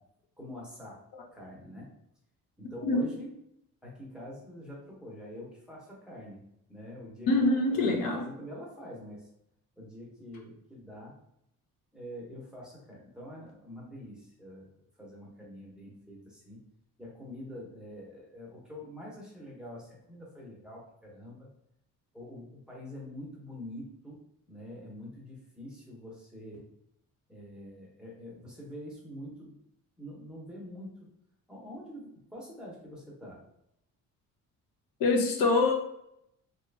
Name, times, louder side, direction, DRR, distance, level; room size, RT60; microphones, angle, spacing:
voice 1, 0.4-1.0 1.3-1.9 2.6-3.3 3.8-6.4 6.7-9.3 9.8-11.2 11.9-14.7 15.0-16.6 17.0-21.5 22.1-24.2 24.5-26.7 27.3-29.5 30.0-31.1 31.5-33.4, left 1 dB, ahead, -5 dB, 0.8 m, -45 dB
voice 2, 7.3-8.3 35.0-35.7, left 2 dB, 75° left, 0 dB, 0.8 m, -24 dB
3.1 x 2.4 x 3.2 m, 0.77 s
cardioid pair, 150°, 35 cm